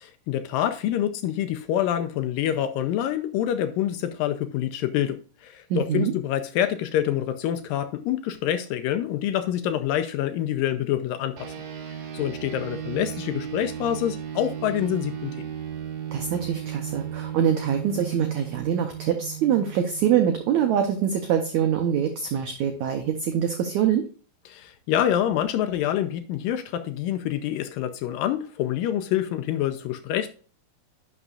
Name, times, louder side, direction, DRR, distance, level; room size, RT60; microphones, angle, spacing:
voice 1, 0.0-11.5 12.1-15.5 24.5-30.3, left 11 dB, 80° left, 2.1 m, -26 dB
voice 2, 5.7-6.1 16.1-24.1, right 9 dB, 80° right, 1.6 m, -24 dB
sound 1, 11.4-21.1, right 9 dB, 60° right, 2.5 m, -35 dB
11.0 x 6.0 x 2.4 m
omnidirectional pair, 4.3 m